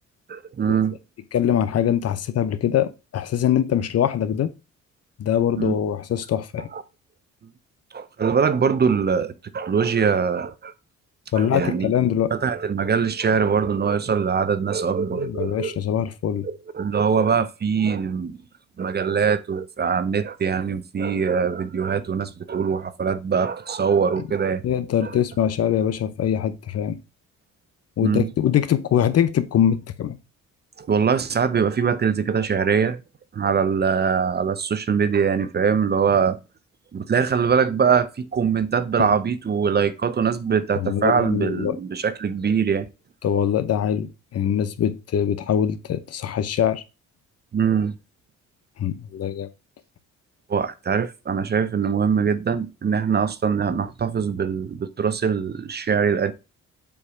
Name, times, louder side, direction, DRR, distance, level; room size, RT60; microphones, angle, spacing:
voice 1, 0.3-1.0 5.6-5.7 6.7-6.8 7.9-10.7 11.3-11.9 12.3-15.8 16.4-18.4 18.8-24.6 25.0-25.2 28.0-28.3 30.8-33.0 33.3-36.4 36.9-42.9 47.5-47.9 50.5-56.3, right 6 dB, 35° right, 0.6 m, -22 dB
voice 2, 1.3-4.5 5.2-6.7 11.3-12.3 15.1-16.5 24.6-27.0 28.0-30.2 39.0-39.2 40.8-41.8 43.2-46.8 48.8-49.5, left 9 dB, 55° left, 0.7 m, -23 dB
7.0 x 3.0 x 4.9 m
cardioid pair, 90°, 30 cm